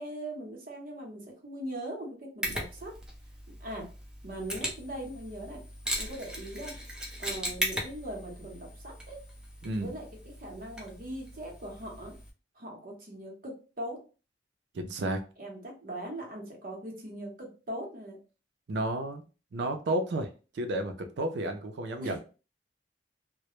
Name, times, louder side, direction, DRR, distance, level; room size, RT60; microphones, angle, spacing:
voice 1, 0.0-2.9 3.5-3.9 4.2-5.6 6.0-6.7 7.2-9.2 9.7-10.0 10.4-12.1 12.5-14.0 15.4-18.2 22.0-22.2, right 1 dB, 50° right, 0 dB, 0.8 m, -40 dB
Mechanisms, 2.4-12.3, equal, 5° right, 0.5 m, -38 dB
voice 2, 14.7-15.2 18.7-19.2 19.5-20.3 20.5-22.2, right 1 dB, 75° right, 6 dB, 0.4 m, -31 dB
2.1 x 2.0 x 2.9 m, 0.34 s
head